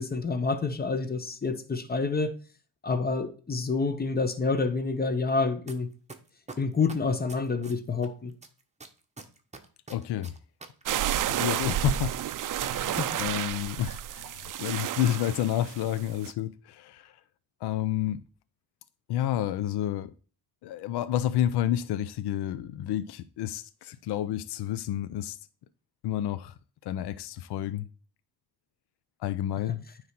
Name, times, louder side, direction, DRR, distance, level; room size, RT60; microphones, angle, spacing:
voice 1, 0.0-2.3 2.8-5.9 6.6-8.3 13.0-13.2, left 4 dB, 25° left, 1.1 m, -28 dB
sound 1, 5.7-5.8 6.1-8.1 8.4-11.4 11.6-11.7, right 3 dB, 15° right, 1.1 m, -44 dB
voice 2, 9.9-10.3 10.9-12.2 12.6-17.2 17.6-18.2 19.1-20.1 20.6-25.4 26.0-26.5 26.8-27.9 29.2-29.8, left 12 dB, 80° left, 0.6 m, -30 dB
sound 2, 10.9-16.3, right 12 dB, 55° right, 0.5 m, -31 dB
9.3 x 3.2 x 5.8 m
cardioid pair, 100°, 39 cm